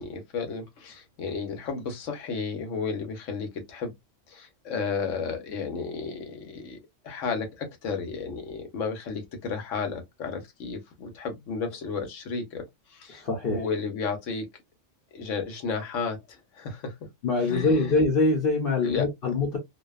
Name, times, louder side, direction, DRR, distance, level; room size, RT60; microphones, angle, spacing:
voice 1, 0.0-3.9 4.3-6.8 7.0-14.5 15.1-17.0 17.4-18.0 18.8-19.1, left 5 dB, 85° left, 1.2 m, -33 dB
voice 2, 13.1-13.6 17.2-19.6, left 3 dB, 55° left, 0.9 m, -24 dB
2.7 x 2.2 x 2.2 m
omnidirectional pair, 1.3 m